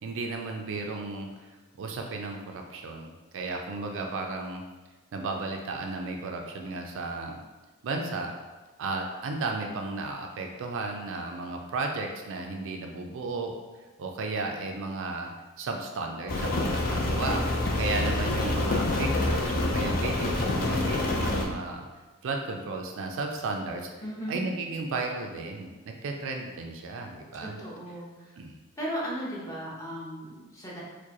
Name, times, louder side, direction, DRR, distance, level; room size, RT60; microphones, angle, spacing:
voice 1, 0.0-1.3 1.8-4.6 5.1-7.4 7.8-8.3 8.8-13.6 14.0-15.3 15.6-17.4 17.8-21.8 22.2-23.9 24.3-27.6 28.4-28.6, right 3 dB, 60° right, 3 dB, 0.4 m, -34 dB
Rain, 16.3-21.5, left 2 dB, 40° left, 0.5 m, -27 dB
voice 2, 24.0-24.4 27.4-28.3 28.8-30.8, equal, 15° left, -6 dB, 0.9 m, -36 dB
4.6 x 2.2 x 2.9 m, 1.2 s
head